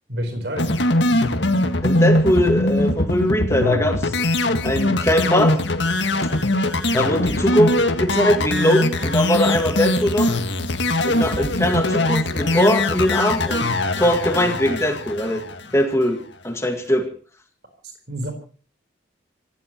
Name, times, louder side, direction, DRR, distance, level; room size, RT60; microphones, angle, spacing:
voice 1, 0.1-0.7 17.8-18.3, equal, 60° right, 4 dB, 4.3 m, -28 dB
sound 1, 0.6-15.9, left 2 dB, 75° left, 1.8 m, -21 dB
voice 2, 1.8-4.2 4.6-5.6 6.9-10.4 11.0-13.7 14.0-15.4 15.7-17.1, equal, 15° left, 5 dB, 1.8 m, -21 dB
27.5 x 16.0 x 3.0 m, 0.41 s
head